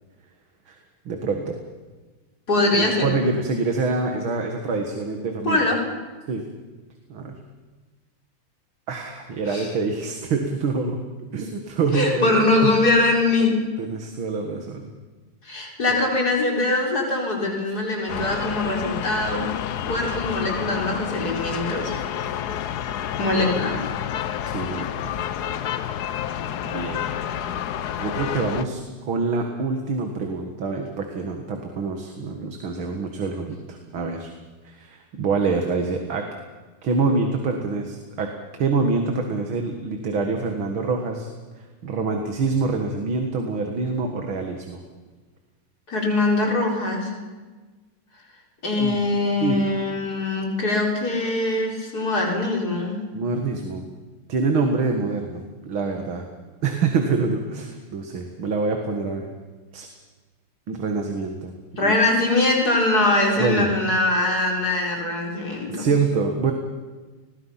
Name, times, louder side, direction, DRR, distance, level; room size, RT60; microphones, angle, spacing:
voice 1, 1.1-1.6 2.7-5.6 6.3-6.4 7.1-7.4 8.9-11.0 11.3-12.3 12.6-12.7 13.8-14.9 24.5-25.2 26.6-27.0 28.0-34.3 34.6-36.2 36.8-41.3 41.6-44.8 48.8-49.0 49.4-49.6 53.1-53.9 54.3-56.3 56.6-59.3 59.7-59.9 60.7-61.5 61.8-61.9 63.4-63.7 65.7-66.5, right 4 dB, 70° right, 4 dB, 2.7 m, -26 dB
voice 2, 2.5-3.1 5.4-5.8 9.5-9.7 11.9-13.6 15.4-19.5 19.9-21.9 23.2-23.8 45.9-47.1 48.6-53.0 61.8-65.9, left 2 dB, 45° left, 0 dB, 4.8 m, -22 dB
sound 1, 18.1-28.7, left 10 dB, 60° left, 1.2 m, -29 dB
30.0 x 21.5 x 5.8 m, 1.3 s
omnidirectional pair, 2.3 m